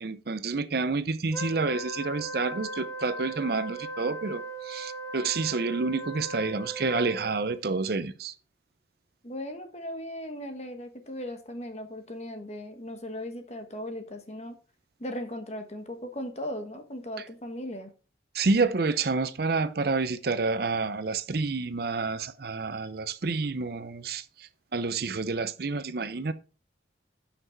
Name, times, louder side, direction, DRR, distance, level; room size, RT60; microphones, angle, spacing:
voice 1, 0.0-8.3 18.3-26.3, right 4 dB, 55° right, 0.6 m, -29 dB
Wind instrument woodwind instrument, 1.3-7.6, right 1 dB, 15° left, 0.7 m, -38 dB
voice 2, 9.2-14.6 15.0-17.9, left 1 dB, 35° left, 1.3 m, -37 dB
8.1 x 6.0 x 4.4 m
head